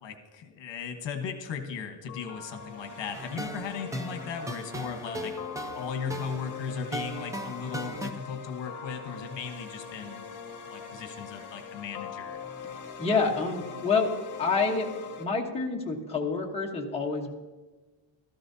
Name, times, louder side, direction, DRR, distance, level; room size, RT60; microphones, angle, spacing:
voice 1, 0.0-5.3 5.7-10.3 10.7-12.4, left 6 dB, 60° left, 6 dB, 1.3 m, -37 dB
sound 1, 2.1-15.2, left 6 dB, 40° left, 1.7 m, -42 dB
sound 2, 3.1-8.1, right 1 dB, 10° right, 0.3 m, -38 dB
voice 2, 12.7-14.1 14.4-14.9 15.2-17.3, left 4 dB, 10° left, -1 dB, 1.1 m, -28 dB
16.0 x 13.5 x 2.8 m, 1.2 s
cardioid pair, 170°, 49 cm